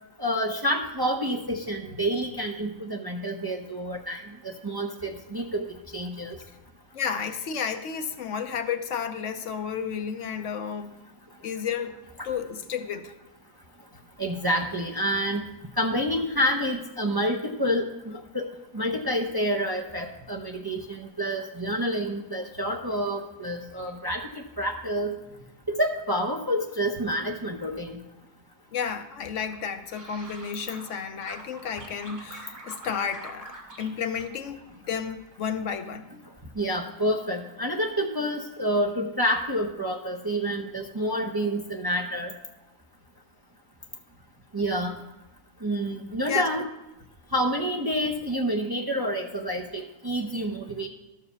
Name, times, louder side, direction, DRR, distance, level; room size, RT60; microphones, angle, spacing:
voice 1, 0.2-5.6 5.9-6.4 14.2-15.4 15.8-25.1 25.7-28.0 36.6-42.3 44.5-44.9 45.6-46.6 47.3-50.9, equal, 25° right, 1 dB, 0.6 m, -28 dB
voice 2, 6.9-11.1 11.4-12.0 12.2-13.1 28.7-34.6 34.9-36.1 46.3-46.5, left 7 dB, 70° left, 8 dB, 1.0 m, -32 dB
sound 1, 29.5-30.9 31.2-33.9 34.2-35.0 35.3-35.7, right 2 dB, 50° right, 2.5 m, -45 dB
12.0 x 4.7 x 6.9 m, 0.94 s
omnidirectional pair, 1.4 m